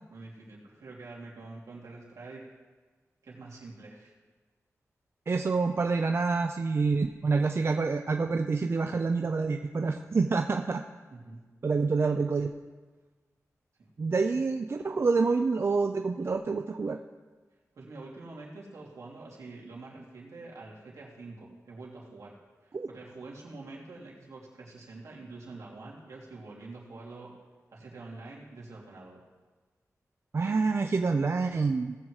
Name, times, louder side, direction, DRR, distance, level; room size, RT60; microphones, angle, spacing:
voice 1, 0.1-2.4 3.2-4.1 11.1-11.4 13.8-13.9 15.0-15.1 17.7-22.4 22.6-27.3 27.7-29.2, right 3 dB, 80° right, -4 dB, 2.8 m, -46 dB
voice 2, 5.3-10.8 11.6-12.5 14.0-17.0 22.7-22.9 30.3-32.0, right 4 dB, 45° right, 5 dB, 0.5 m, -27 dB
18.0 x 7.6 x 3.2 m, 1.3 s
wide cardioid pair, 80°, 6 cm